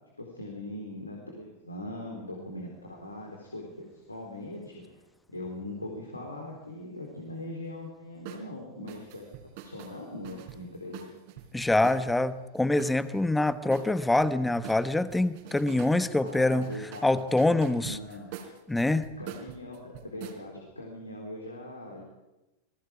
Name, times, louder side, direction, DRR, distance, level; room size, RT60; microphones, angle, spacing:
voice 1, 0.2-4.8 5.3-9.3 9.6-11.1 16.2-17.2 17.8-18.3 19.2-22.0, left 1 dB, 80° left, 0 dB, 3.8 m, -41 dB
sound 1, 8.3-8.5 8.9-12.2 12.8-14.3 14.6-16.0 16.2-20.4, right 8 dB, 50° right, 3.8 m, -45 dB
voice 2, 11.5-16.7 17.0-18.0 18.7-19.1, left 2 dB, 5° left, 14 dB, 1.1 m, -25 dB
28.0 x 20.0 x 5.0 m, 1.0 s
figure-of-eight pair, 90°, 0 cm